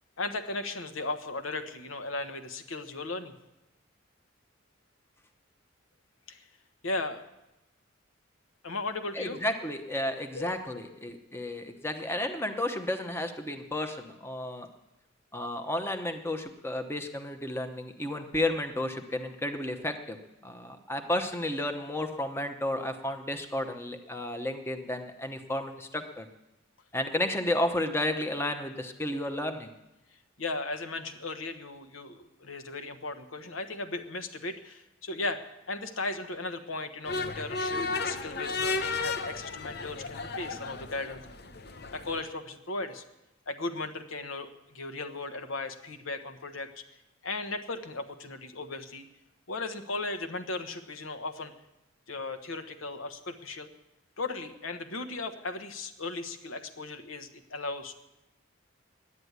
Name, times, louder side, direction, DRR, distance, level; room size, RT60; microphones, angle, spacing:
voice 1, 0.2-3.3 6.3-6.5 6.8-7.2 8.6-9.4 10.3-10.7 11.1-11.4 30.4-41.2 41.9-43.0 43.5-46.8 47.2-49.1 49.5-51.5 52.1-53.7 54.2-57.9, left 2 dB, 80° left, 8 dB, 1.1 m, -36 dB
voice 2, 9.1-14.7 15.3-20.2 20.4-26.3 26.9-29.7, left 1 dB, 10° left, 6 dB, 0.8 m, -32 dB
sound 1, 37.0-42.2, left 3 dB, 50° left, 0.9 m, -34 dB
11.0 x 9.7 x 9.4 m, 0.93 s
head